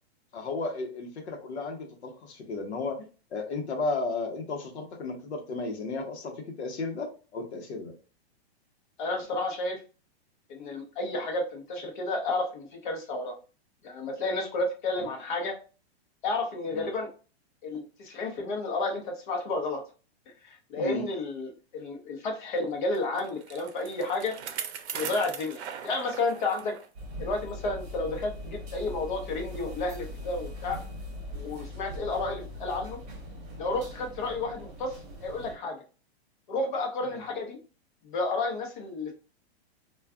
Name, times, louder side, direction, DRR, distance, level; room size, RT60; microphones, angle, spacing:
voice 1, 0.3-3.1 3.3-7.9 15.0-15.1 16.7-16.9 20.8-21.1 37.1-37.2, left 3 dB, 85° left, 4 dB, 0.9 m, -34 dB
voice 2, 9.0-9.8 10.5-13.3 13.8-15.5 16.2-17.1 17.6-19.8 20.4-24.3 24.9-26.7 27.2-30.8 31.3-33.0 33.6-35.8 36.5-37.6 38.0-39.1, left 2 dB, 50° left, 3 dB, 0.9 m, -31 dB
Bicycle, 22.9-26.9 27.3-27.4 28.2-28.3, right 8 dB, 90° right, 0.6 m, -39 dB
sound 1, 26.9-35.5, left 1 dB, 25° right, 1.0 m, -41 dB
2.4 x 2.3 x 3.5 m, 0.35 s
hypercardioid pair, 165°, 32 cm